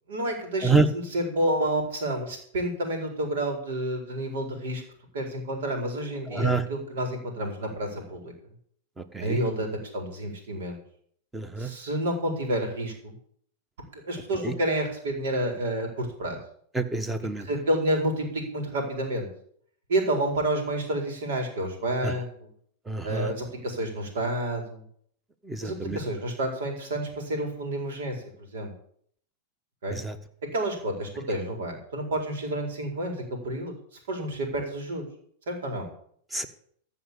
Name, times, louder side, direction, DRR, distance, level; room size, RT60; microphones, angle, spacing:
voice 1, 0.1-4.8 5.1-8.3 9.2-10.8 11.6-13.1 13.9-16.4 17.4-19.3 19.9-22.5 23.0-24.8 25.6-28.2 28.5-28.7 29.8-30.0 30.5-33.1 33.4-33.7 34.1-35.0 35.5-35.9, right 1 dB, 75° right, 4 dB, 4.4 m, -29 dB
voice 2, 6.3-6.6 9.1-9.4 11.3-11.7 14.4-14.5 16.7-17.5 22.9-23.3 25.5-26.0 30.0-30.1 36.3-36.5, right 3 dB, 10° right, 11 dB, 1.3 m, -26 dB
14.5 x 5.4 x 8.4 m, 0.63 s
hypercardioid pair, 115°, 0 cm